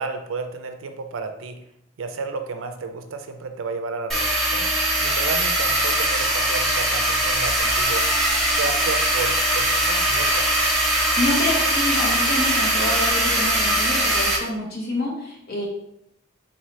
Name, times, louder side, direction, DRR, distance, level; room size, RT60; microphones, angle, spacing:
voice 1, 0.0-1.6 2.0-4.7 5.0-8.1 8.6-10.5, right 4 dB, 80° right, 7 dB, 0.4 m, -32 dB
sound 1, 4.1-14.4, right 1 dB, ahead, 0.8 m, -21 dB
voice 2, 11.2-15.7, left 1 dB, 50° left, -3 dB, 1.1 m, -27 dB
3.9 x 2.7 x 3.1 m, 0.78 s
head